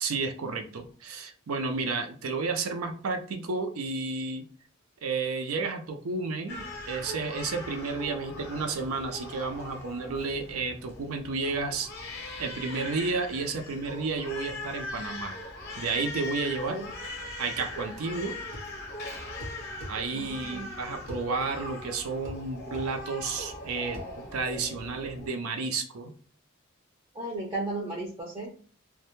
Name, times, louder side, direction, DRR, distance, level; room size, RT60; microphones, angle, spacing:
voice 1, 0.0-4.4 5.0-11.9 12.4-15.4 15.8-16.8 17.4-18.3 19.9-24.0 24.3-26.1, right 4 dB, 85° right, 5 dB, 0.5 m, -32 dB
Crying sobbing, 6.5-25.3, left 2 dB, 45° left, 0.6 m, -40 dB
sound 1, 18.5-18.7 19.4-20.0 21.1-21.3 22.2-22.4 22.7-22.9 23.9-24.1, equal, 70° right, 0.9 m, -40 dB
voice 2, 20.1-20.7 27.1-28.5, right 2 dB, 20° right, -3 dB, 0.4 m, -35 dB
2.1 x 2.1 x 2.9 m, 0.42 s
head